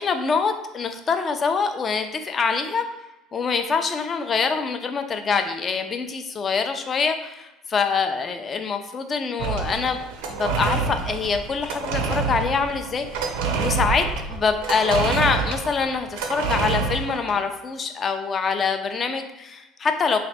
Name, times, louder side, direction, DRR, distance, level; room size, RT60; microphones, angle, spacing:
voice 1, 0.0-2.8 3.3-10.0 10.3-13.3 13.6-20.2, left 5 dB, 30° left, 7 dB, 0.4 m, -25 dB
sound 1, 9.4-17.3, right 5 dB, 90° right, 0.5 m, -27 dB
3.3 x 2.5 x 4.0 m, 0.97 s
cardioid pair, 120°, 0 cm